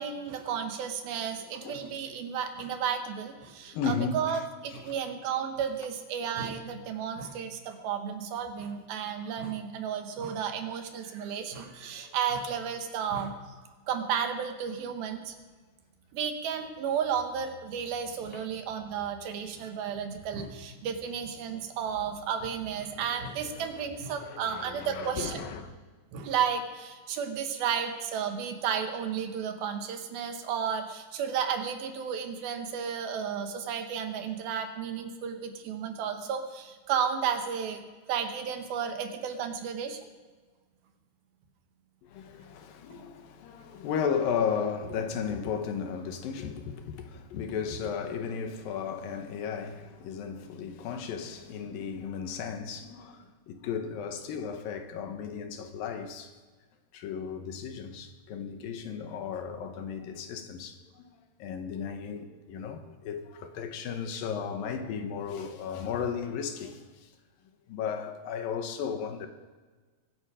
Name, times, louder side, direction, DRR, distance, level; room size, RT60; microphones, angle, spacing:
voice 1, 0.0-13.4 13.9-15.3 16.1-25.4 26.1-40.0 42.9-43.0, right 7 dB, 85° right, 3.2 m, -33 dB
voice 2, 3.7-4.4 4.7-4.8 11.9-12.2 18.3-18.4 23.0-23.9 24.2-25.7 42.0-56.3 56.9-61.1 61.4-67.1 67.7-69.3, left 6 dB, 75° left, 2.9 m, -35 dB
23.0 x 10.5 x 5.0 m
omnidirectional pair, 4.2 m